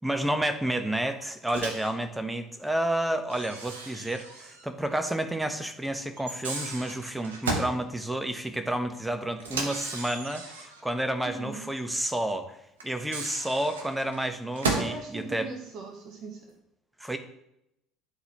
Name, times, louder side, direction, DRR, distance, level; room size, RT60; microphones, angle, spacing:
voice 1, 0.0-12.6 12.8-15.5 17.0-17.2, right 1 dB, 5° right, 7 dB, 1.0 m, -30 dB
Microwave oven, 1.5-1.9 3.3-4.7 5.0-5.1 6.2-7.8 9.4-10.8 12.8-15.0, right 3 dB, 85° right, 0.9 m, -34 dB
voice 2, 11.2-11.6 14.7-16.5, right 4 dB, 55° right, 3 dB, 1.2 m, -39 dB
11.5 x 3.9 x 3.0 m, 0.81 s
hypercardioid pair, 65°, 0 cm